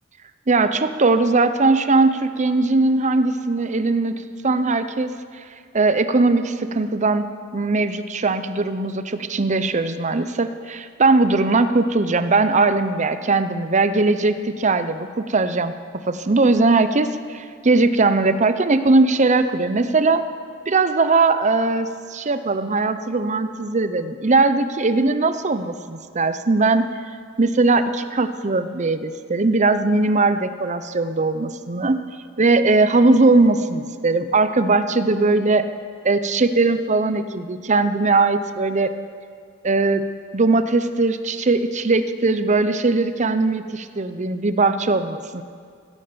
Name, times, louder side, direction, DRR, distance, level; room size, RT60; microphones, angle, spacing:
voice 1, 0.5-5.4 5.7-7.3 7.5-15.7 16.1-20.2 20.7-26.9 27.4-32.0 32.4-35.6 36.0-38.9 39.6-40.0 40.3-45.4, right 3 dB, 35° right, 11 dB, 0.7 m, -19 dB
16.0 x 12.5 x 6.9 m, 2.2 s
head